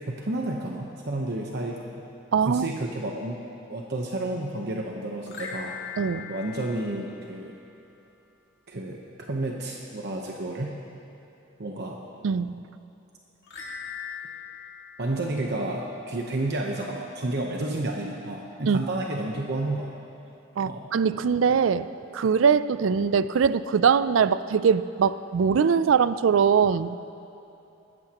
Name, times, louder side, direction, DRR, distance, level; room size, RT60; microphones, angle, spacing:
voice 1, 0.1-2.0 2.5-3.4 3.7-5.7 6.3-7.5 8.7-9.0 9.3-10.7 11.6-12.0 15.0-19.9 20.6-20.9, right 2 dB, 55° right, 0 dB, 1.0 m, -31 dB
voice 2, 2.3-2.7 6.0-6.3 12.2-12.5 18.7-18.8 20.6-21.9 22.1-26.9, right 6 dB, 75° right, 15 dB, 0.4 m, -22 dB
sound 1, 5.2-7.7 13.4-16.1, left 6 dB, 60° left, 2.1 m, -40 dB
20.5 x 14.5 x 3.0 m, 2.8 s
head